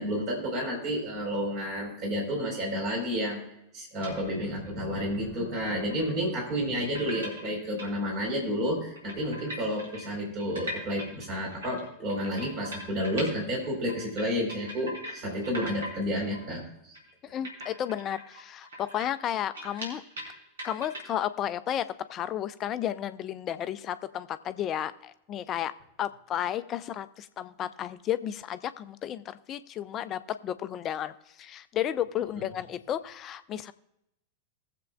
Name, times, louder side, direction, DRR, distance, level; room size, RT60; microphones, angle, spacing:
voice 1, 0.0-3.4 3.7-16.9, equal, 35° right, 0 dB, 4.1 m, -31 dB
sound 1, 4.0-4.2 4.6-4.7 5.9-6.1 6.8-7.9 8.3-8.4 8.7-8.8 9.0-13.4 13.6-15.2 15.4-16.0 16.3-16.5 16.9-17.1 17.4-20.3 20.6-21.2, equal, 65° right, 3.6 m, -40 dB
voice 2, 17.2-20.0 20.6-25.7 26.0-33.7, left 10 dB, 30° left, 13 dB, 0.6 m, -33 dB
20.5 x 7.7 x 2.3 m, 0.82 s
figure-of-eight pair, 90°, 0 cm